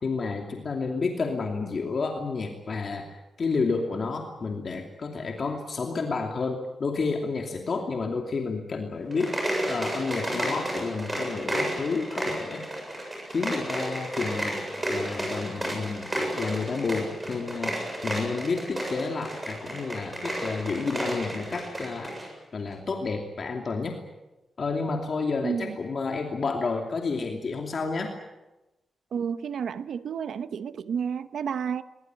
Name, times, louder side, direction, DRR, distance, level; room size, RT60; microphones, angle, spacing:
voice 1, 0.0-3.1 3.4-9.3 9.7-12.7 13.3-14.6 14.9-16.1 16.3-17.8 18.0-22.1 22.5-24.0 24.6-28.1, left 4 dB, 45° left, 2.7 m, -30 dB
sound 1, 9.0-22.3, right 1 dB, 15° right, 7.6 m, -32 dB
voice 2, 25.4-25.8 29.1-31.8, right 7 dB, 85° right, 1.0 m, -31 dB
22.5 x 21.0 x 9.2 m
wide cardioid pair, 160°, 0 cm